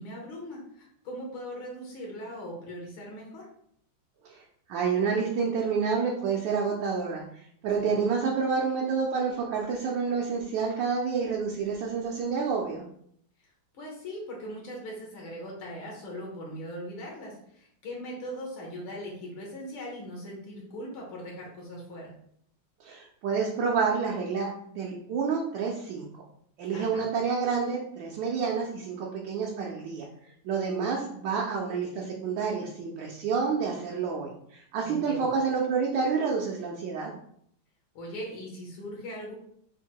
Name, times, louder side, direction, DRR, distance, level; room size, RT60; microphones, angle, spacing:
voice 1, 0.0-3.4 7.8-8.0 13.7-22.1 26.7-27.1 34.8-35.3 38.0-39.3, equal, 75° left, -2 dB, 1.9 m, -40 dB
voice 2, 4.7-7.2 7.6-12.8 22.8-24.5 24.8-26.1 26.6-30.0 30.4-37.1, right 5 dB, 70° right, -2 dB, 1.2 m, -28 dB
4.5 x 2.2 x 4.4 m, 0.68 s
omnidirectional pair, 2.2 m